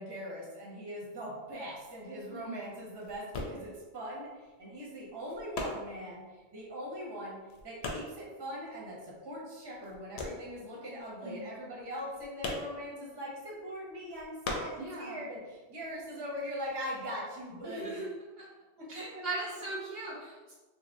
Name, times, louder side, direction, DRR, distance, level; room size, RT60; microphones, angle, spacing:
voice 1, 0.0-7.4 7.6-18.0 18.8-19.2, equal, 25° right, -4 dB, 0.7 m, -41 dB
sound 1, 1.3-9.3 9.6-15.5 15.7-16.8, left 2 dB, 75° left, 0.8 m, -41 dB
voice 2, 14.8-15.2 17.6-18.1 18.4-18.5 18.9-20.5, right 2 dB, 65° right, -3 dB, 0.8 m, -39 dB
3.0 x 2.9 x 2.6 m, 1.2 s
omnidirectional pair, 1.1 m